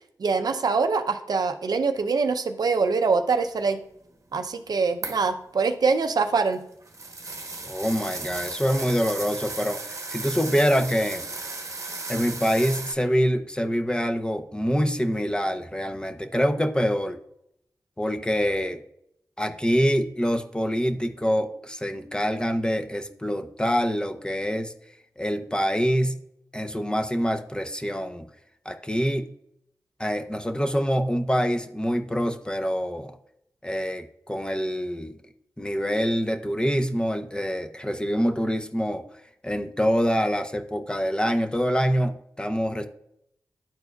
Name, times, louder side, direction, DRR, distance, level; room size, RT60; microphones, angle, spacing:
voice 1, 0.2-3.8 4.3-6.6, right 4 dB, 75° right, 8 dB, 0.5 m, -24 dB
sound 1, 5.0-5.3 6.2-12.9, right 3 dB, 45° right, 1.0 m, -35 dB
voice 2, 7.7-11.2 12.1-17.2 18.0-18.8 19.4-24.7 25.2-26.2 26.5-28.3 28.6-29.3 30.0-33.1 33.6-35.2 35.6-39.0 39.4-42.9, equal, 10° left, 7 dB, 0.7 m, -25 dB
10.5 x 4.4 x 2.3 m, 0.76 s
cardioid pair, 45°, 7 cm